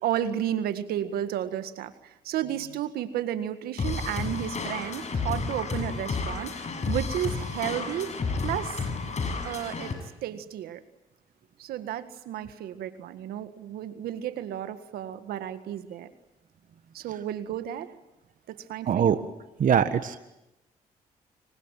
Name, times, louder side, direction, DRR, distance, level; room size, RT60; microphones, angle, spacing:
voice 1, 0.0-1.9 2.2-8.1 8.4-8.8 9.4-9.9 10.2-10.8 11.6-16.1 16.9-17.9 18.5-19.2, right 11 dB, 80° right, 10 dB, 1.8 m, -32 dB
sound 1, 3.8-9.9, left 4 dB, 50° left, 7.1 m, -31 dB
voice 2, 18.9-19.2 19.6-20.2, right 8 dB, 60° right, 10 dB, 1.5 m, -22 dB
26.5 x 23.5 x 9.2 m, 0.93 s
supercardioid pair, 60°, 15 cm